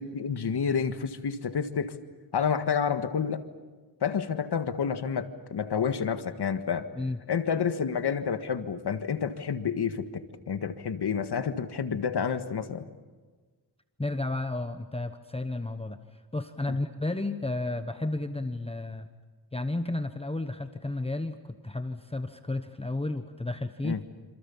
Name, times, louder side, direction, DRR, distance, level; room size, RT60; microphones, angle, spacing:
voice 1, 0.0-1.9 2.3-3.4 4.0-6.9 7.3-12.8 23.8-24.0, left 6 dB, 75° left, 9 dB, 1.8 m, -29 dB
voice 2, 14.0-16.0 16.3-19.1 19.5-24.0, left 2 dB, 15° left, 8 dB, 1.0 m, -32 dB
27.5 x 27.0 x 7.2 m, 1.4 s
wide cardioid pair, 130°, 40 cm